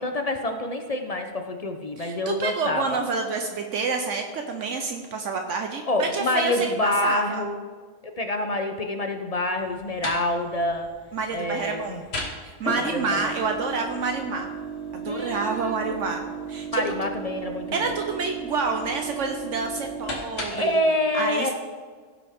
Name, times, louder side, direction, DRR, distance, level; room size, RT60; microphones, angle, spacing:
voice 1, 0.0-3.0 5.9-7.6 8.0-10.9 11.3-12.0 12.6-13.3 15.1-16.0 16.7-17.9 20.5-21.5, left 1 dB, 40° left, 5 dB, 0.6 m, -27 dB
voice 2, 2.0-7.4 11.1-12.1 12.4-14.5 14.9-16.8 17.7-20.8 21.1-21.5, right 4 dB, 70° right, 4 dB, 1.1 m, -28 dB
sound 1, 9.6-20.8, right 3 dB, 55° left, 1.7 m, -36 dB
16.0 x 6.0 x 3.6 m, 1.5 s
omnidirectional pair, 1.3 m